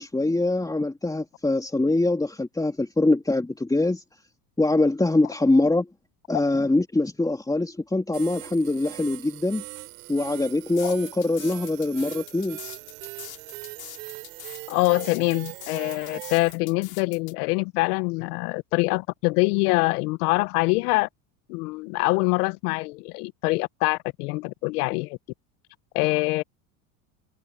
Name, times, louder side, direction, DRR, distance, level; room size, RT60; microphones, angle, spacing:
voice 1, 0.0-4.0 4.6-5.9 6.3-9.6 10.1-12.6, left 2 dB, 10° left, 3.3 m, -23 dB
sound 1, 8.1-16.5, right 22 dB, 80° right, 3.7 m, -40 dB
sound 2, 10.8-17.3, left 16 dB, 50° left, 4.3 m, -43 dB
voice 2, 14.7-21.1 21.5-25.2 25.9-26.4, left 25 dB, 75° left, 1.2 m, -24 dB
supercardioid pair, 110°, 46 cm